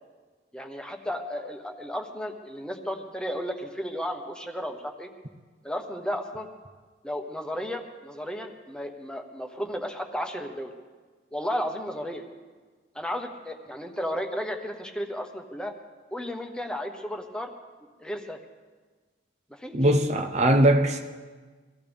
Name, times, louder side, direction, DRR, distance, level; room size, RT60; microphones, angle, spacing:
voice 1, 0.5-5.1 5.6-6.5 7.0-10.7 11.3-12.2 12.9-15.7 16.1-17.5 18.0-18.4 19.5-19.8, equal, 5° left, 3 dB, 1.2 m, -33 dB
voice 2, 19.7-21.0, right 1 dB, 35° right, 4 dB, 0.8 m, -20 dB
24.5 x 16.0 x 3.6 m, 1.4 s
head